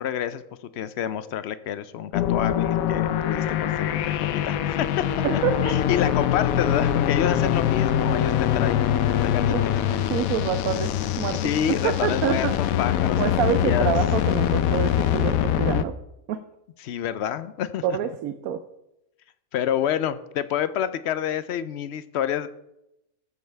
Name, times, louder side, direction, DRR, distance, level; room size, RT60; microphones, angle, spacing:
voice 1, 0.0-5.0 5.3-8.9 9.2-9.8 11.3-13.9 16.8-18.0 19.5-22.5, left 9 dB, 65° left, 13 dB, 0.7 m, -28 dB
sound 1, 2.1-15.8, left 10 dB, 80° left, 1.0 m, -23 dB
voice 2, 9.5-11.4 11.8-12.6 13.2-16.0 16.3-16.4 17.8-18.6, right 9 dB, 85° right, 9 dB, 1.1 m, -27 dB
14.5 x 5.4 x 4.5 m, 0.87 s
omnidirectional pair, 1.5 m